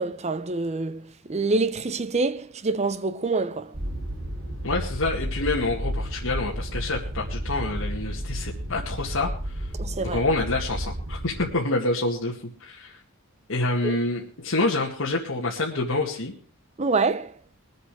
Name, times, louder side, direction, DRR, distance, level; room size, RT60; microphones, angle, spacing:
voice 1, 0.0-3.7 9.8-10.2 13.8-14.0 16.8-17.3, right 3 dB, 30° right, 0.6 m, -26 dB
sound 1, 3.7-11.5, right 1 dB, 60° right, 5.1 m, -32 dB
voice 2, 4.6-9.7 10.0-13.0 13.5-16.3, left 2 dB, 70° left, 2.1 m, -27 dB
21.5 x 8.0 x 4.9 m
head